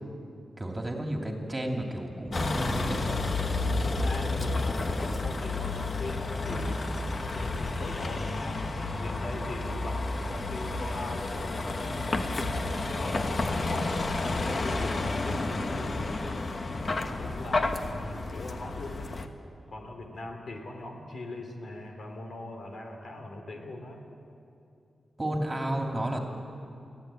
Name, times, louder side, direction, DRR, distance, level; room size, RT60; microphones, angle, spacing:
voice 1, 0.6-3.0 25.2-26.2, right 1 dB, 20° right, 1 dB, 2.7 m, -31 dB
Vehicle, 2.3-19.3, left 2 dB, 45° left, 1.3 m, -31 dB
voice 2, 4.0-6.8 7.3-8.7 9.0-12.3 13.0-14.9 15.2-16.2 16.8-19.1 19.7-24.0, left 2 dB, 65° left, 3 dB, 3.1 m, -40 dB
22.5 x 15.0 x 9.0 m, 2.7 s
wide cardioid pair, 95°, 0 cm